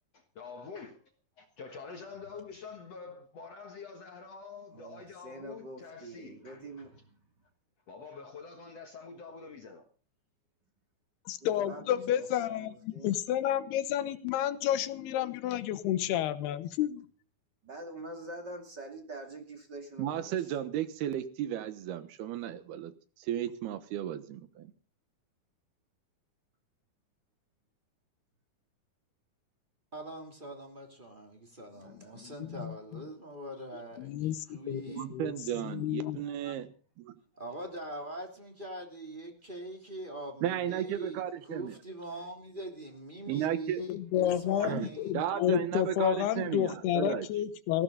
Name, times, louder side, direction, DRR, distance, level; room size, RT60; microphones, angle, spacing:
voice 1, 0.4-1.0 1.4-6.6 7.9-9.8, left 5 dB, 55° left, 2.0 m, -46 dB
voice 2, 2.0-2.3 4.7-7.2 11.4-13.1 17.6-20.5 22.5-22.6 31.8-32.2, right 2 dB, 30° right, 2.6 m, -46 dB
voice 3, 11.3-17.0 32.2-32.8 34.0-36.2 43.9-47.8, left 11 dB, 90° left, 3.1 m, -31 dB
voice 4, 20.0-22.9 23.2-24.7 35.0-36.7 37.0-37.2 40.4-41.7 43.3-43.8 44.6-44.9 45.1-47.3, right 11 dB, 80° right, 3.2 m, -34 dB
voice 5, 29.9-35.1 37.4-45.3, right 1 dB, 15° right, 2.8 m, -43 dB
19.0 x 16.0 x 4.0 m
omnidirectional pair, 4.5 m